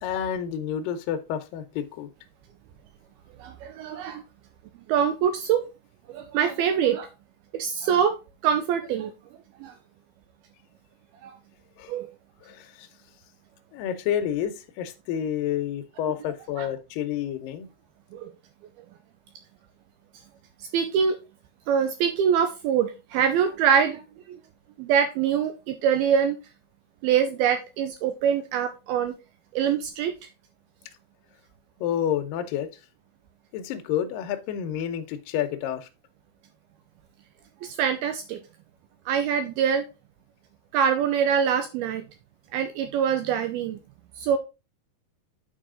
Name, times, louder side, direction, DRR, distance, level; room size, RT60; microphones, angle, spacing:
voice 1, 0.0-2.1 11.8-11.9 12.4-12.9 13.7-17.7 31.8-32.7 33.5-35.9, left 9 dB, 75° left, 6 dB, 2.1 m, -29 dB
voice 2, 3.4-4.2 4.9-5.6 6.1-7.1 7.5-8.2 8.4-9.1 9.6-9.8 11.2-11.4 11.9-12.1 16.6-16.7 18.1-18.3 20.6-21.2 21.7-24.4 24.8-26.4 27.0-29.2 29.5-30.1 37.6-38.4 39.1-39.9 40.7-42.0 42.5-43.8 44.2-44.4, right 8 dB, 80° right, 8 dB, 2.3 m, -24 dB
9.1 x 4.8 x 3.7 m, 0.28 s
omnidirectional pair, 4.9 m